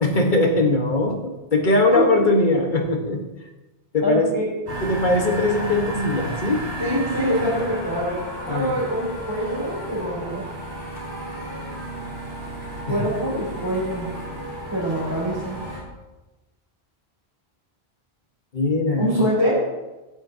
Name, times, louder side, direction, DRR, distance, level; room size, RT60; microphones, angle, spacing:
voice 1, 0.0-3.2 3.9-4.3 4.8-6.6 8.5-8.8 12.9-13.0 18.5-19.3, left 2 dB, 50° left, 2 dB, 1.5 m, -21 dB
voice 2, 4.0-4.6 6.8-10.5 12.9-14.1 14.7-15.5 19.0-19.5, equal, 20° right, -10 dB, 3.4 m, -24 dB
sound 1, 4.7-15.8, right 1 dB, 85° right, 4.0 m, -33 dB
15.5 x 9.0 x 2.8 m, 1.1 s
omnidirectional pair, 1.0 m